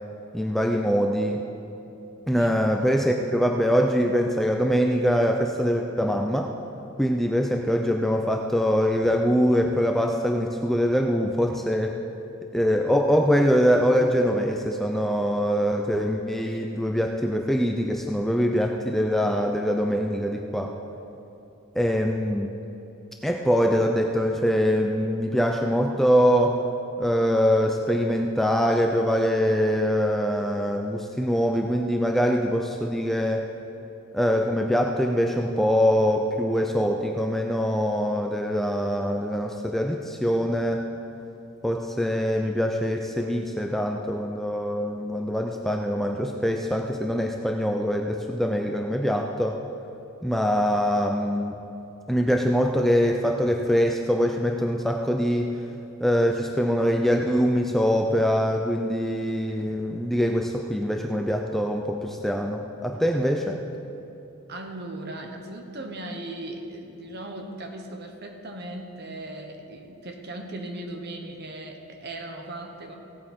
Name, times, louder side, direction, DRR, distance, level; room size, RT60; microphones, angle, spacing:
voice 1, 0.3-1.4 2.3-6.5 7.0-12.0 12.5-20.7 21.8-22.5 23.2-26.6 27.0-33.5 34.1-40.9 41.6-49.6 50.2-51.6 52.1-55.6 56.0-63.6, equal, ahead, 2 dB, 0.4 m, -23 dB
voice 2, 64.5-73.0, right 1 dB, 45° right, 4 dB, 1.1 m, -38 dB
16.5 x 8.7 x 4.4 m, 3.0 s
head